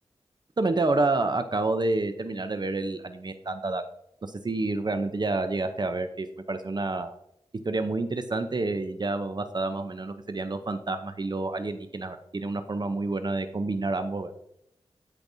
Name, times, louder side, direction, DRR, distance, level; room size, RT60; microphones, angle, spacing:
voice 1, 0.6-3.8 4.2-7.1 7.6-14.3, right 2 dB, 40° right, 8 dB, 0.6 m, -29 dB
13.0 x 5.2 x 2.6 m, 0.77 s
wide cardioid pair, 65°, 11 cm